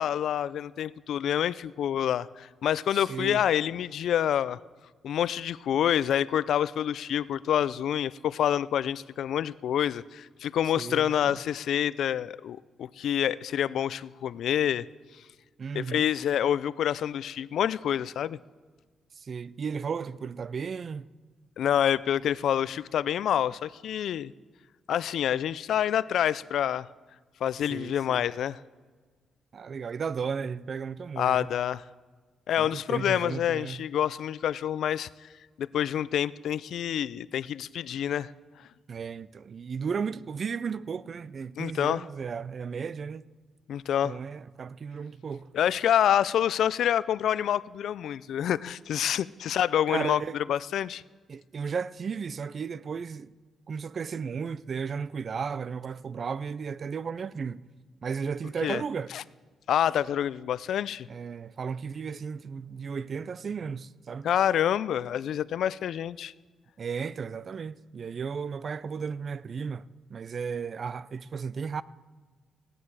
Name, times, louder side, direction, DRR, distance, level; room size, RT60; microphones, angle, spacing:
voice 1, 0.0-4.6 5.0-14.9 15.7-18.4 21.6-24.3 24.9-26.9 27.4-28.6 31.2-31.8 32.5-35.1 35.6-38.3 41.6-42.0 43.7-44.2 45.5-50.2 50.5-51.0 58.6-58.8 59.1-59.2 59.7-61.1 64.2-66.3, left 10 dB, 70° left, 0.3 m, -27 dB
voice 2, 2.9-3.4 10.8-11.4 15.6-16.1 19.2-21.1 27.7-28.2 29.5-31.5 32.6-33.8 38.9-43.3 44.0-45.5 49.9-50.4 51.3-53.3 53.7-57.6 58.0-59.1 61.1-64.3 66.8-69.9 70.1-71.8, right 6 dB, 40° right, 0.3 m, -34 dB
16.0 x 10.0 x 4.7 m
cardioid pair, 150°, 0 cm